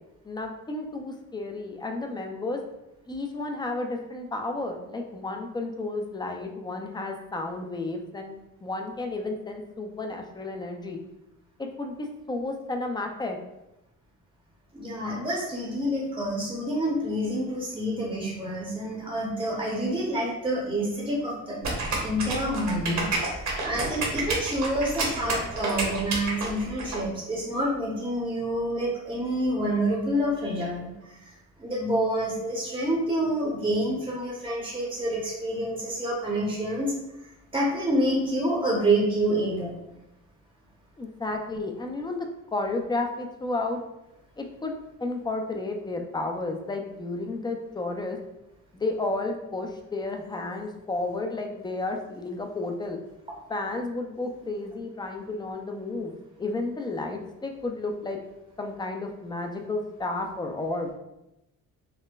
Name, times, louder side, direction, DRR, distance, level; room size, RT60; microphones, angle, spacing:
voice 1, 0.2-2.6 3.1-8.3 8.6-11.0 11.6-13.4 41.0-43.8 44.4-44.7 45.0-48.2 48.7-53.0 53.5-58.2 58.6-60.9, left 2 dB, 15° left, 3 dB, 0.4 m, -32 dB
voice 2, 14.7-21.6 22.0-31.3 31.6-37.0 37.5-39.7, right 1 dB, 15° right, -4 dB, 0.7 m, -28 dB
sound 1, 21.6-27.0, right 3 dB, 60° right, 1.0 m, -29 dB
4.4 x 2.1 x 2.3 m, 0.90 s
cardioid pair, 100°, 32 cm